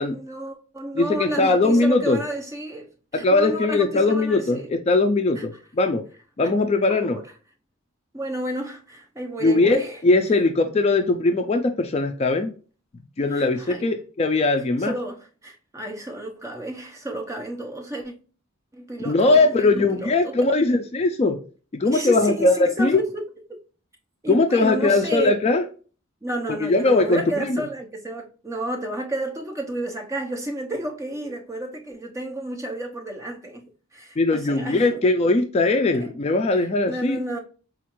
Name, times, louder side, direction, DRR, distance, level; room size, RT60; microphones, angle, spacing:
voice 1, 0.0-4.7 5.4-5.5 6.4-6.5 6.9-7.2 8.1-10.0 13.3-13.9 14.8-18.1 18.7-20.4 21.9-23.2 23.5-23.6 24.2-25.3 26.2-33.6 33.9-35.0 35.9-36.1 36.5-37.4, right 1 dB, 15° right, 0.6 m, -31 dB
voice 2, 1.0-2.2 3.1-6.0 6.4-7.2 9.4-12.5 13.2-14.9 19.1-21.4 21.7-23.0 24.3-25.7 26.5-27.6 34.2-37.2, left 2 dB, 30° left, 0.3 m, -20 dB
4.3 x 2.4 x 2.9 m
head